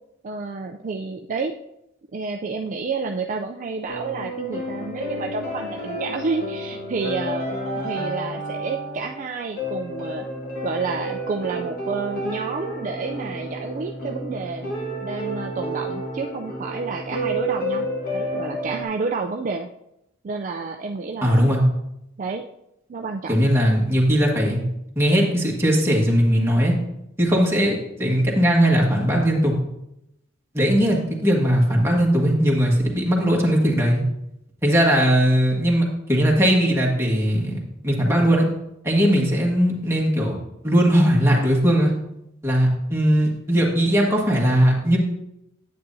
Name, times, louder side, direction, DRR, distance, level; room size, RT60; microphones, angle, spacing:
voice 1, 0.2-1.5 2.1-7.5 7.8-10.3 10.6-14.7 15.0-17.9 18.1-19.7 20.2-21.5 22.2-22.4 22.9-23.5, right 4 dB, 40° right, 3 dB, 0.4 m, -29 dB
sound 1, 3.9-18.8, equal, 50° left, 1.6 m, -30 dB
voice 2, 21.2-21.6 23.3-24.6 24.9-26.7 27.2-29.5 30.5-34.0 34.6-38.5 38.8-41.9 42.4-45.0, equal, 10° right, -2 dB, 1.6 m, -19 dB
9.5 x 8.5 x 2.7 m, 0.84 s
head